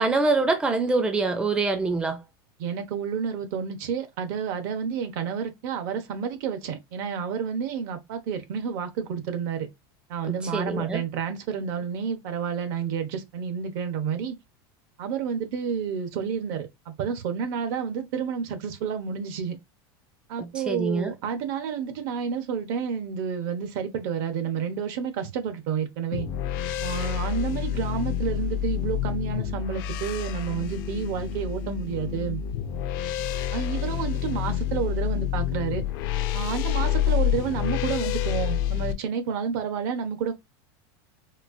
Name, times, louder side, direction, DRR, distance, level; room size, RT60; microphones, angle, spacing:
voice 1, 0.0-2.2 10.3-11.0 20.4-21.1, right 3 dB, 10° right, 0.5 m, -25 dB
voice 2, 2.6-9.7 10.1-14.4 15.0-19.6 20.3-26.3 26.8-32.4 33.5-35.8 36.3-40.3, right 7 dB, 65° right, 1.1 m, -30 dB
sound 1, 26.1-38.9, left 10 dB, 60° left, 0.6 m, -28 dB
4.4 x 2.4 x 2.6 m
supercardioid pair, 140°, 12 cm